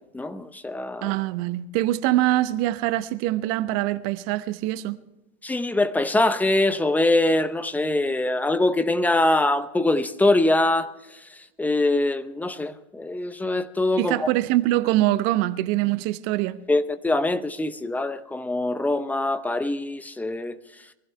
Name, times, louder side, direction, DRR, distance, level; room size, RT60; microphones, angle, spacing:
voice 1, 0.1-1.1 5.4-10.9 11.6-14.3 16.7-20.5, left 2 dB, 5° left, 0.7 m, -23 dB
voice 2, 1.0-5.0 14.0-16.6, right 16 dB, 40° right, 1.0 m, -24 dB
23.5 x 15.5 x 3.3 m
hypercardioid pair, 105°, 33 cm